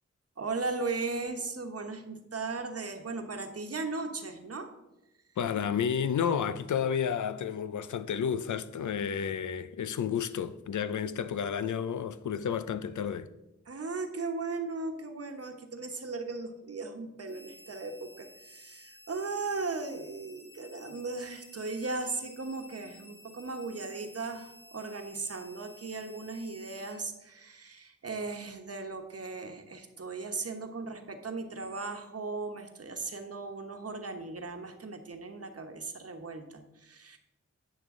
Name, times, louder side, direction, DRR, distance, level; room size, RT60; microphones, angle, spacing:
voice 1, 0.4-4.7 13.7-37.2, right 3 dB, 55° right, 1.1 m, -37 dB
voice 2, 5.4-13.3, left 7 dB, 85° left, 0.5 m, -31 dB
sound 1, 17.3-26.9, left 1 dB, 50° left, 2.5 m, -55 dB
10.5 x 6.6 x 3.7 m
wide cardioid pair, 65°, 29 cm